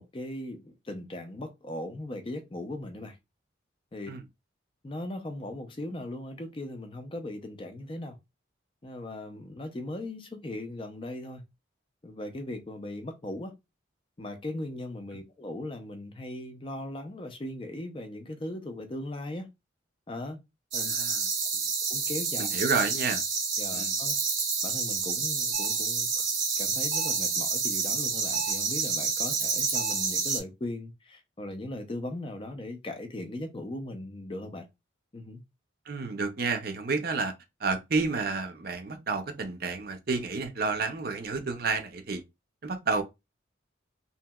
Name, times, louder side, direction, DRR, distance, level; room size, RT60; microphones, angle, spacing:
voice 1, 0.0-3.2 3.9-4.1 4.8-8.2 8.8-11.4 12.0-13.5 14.2-19.5 20.1-20.4 20.7-20.9 21.9-22.5 23.6-24.2 24.6-26.3 26.6-34.7 35.1-35.4, left 1 dB, 25° left, 0.4 m, -38 dB
sound 1, 20.7-30.4, right 5 dB, 85° right, 1.0 m, -29 dB
voice 2, 20.9-21.3 22.4-23.2 23.7-24.0 35.9-37.3 37.6-42.2 42.6-43.0, right 4 dB, 50° right, 0.5 m, -30 dB
sound 2, 25.5-25.9 26.9-27.3 28.3-28.7 29.7-30.1, right 4 dB, 80° left, 0.6 m, -39 dB
2.9 x 2.7 x 2.3 m
head